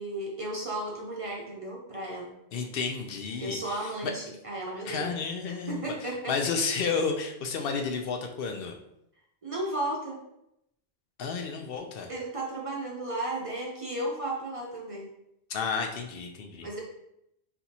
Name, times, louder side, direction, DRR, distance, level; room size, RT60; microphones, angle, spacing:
voice 1, 0.0-2.3 3.4-5.2 5.5-6.4 9.4-10.2 12.1-15.1 16.6-16.8, right 1 dB, 40° right, -2 dB, 0.6 m, -34 dB
voice 2, 2.5-4.1 4.9-5.9 6.3-8.7 11.2-12.1 15.5-16.7, left 5 dB, 70° left, 4 dB, 0.7 m, -31 dB
4.0 x 3.4 x 2.8 m, 0.80 s
omnidirectional pair, 1.1 m